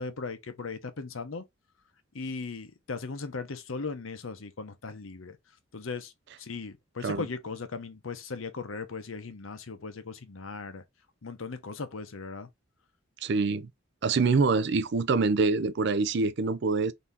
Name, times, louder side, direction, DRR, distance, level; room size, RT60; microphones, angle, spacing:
voice 1, 0.0-1.4 2.1-5.4 5.7-6.1 6.4-10.8 11.2-12.5, left 4 dB, 85° left, 0.8 m, -38 dB
voice 2, 13.2-13.7 14.0-16.9, right 4 dB, 60° right, 0.5 m, -25 dB
4.1 x 2.8 x 3.4 m
head